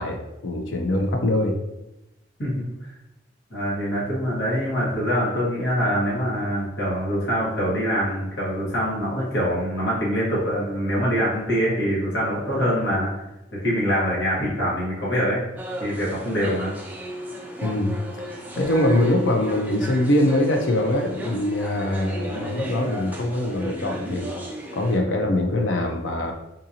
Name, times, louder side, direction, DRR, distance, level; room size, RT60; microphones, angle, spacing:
voice 1, 0.0-1.6 17.6-18.0 18.5-24.3 24.7-26.3, left 1 dB, 80° left, 3 dB, 0.5 m, -23 dB
voice 2, 3.5-13.1 13.5-15.4 15.8-16.7, equal, 60° left, -6 dB, 1.5 m, -24 dB
sound 1, 15.6-25.0, equal, 10° right, 0.3 m, -35 dB
3.8 x 2.6 x 2.8 m, 0.94 s
head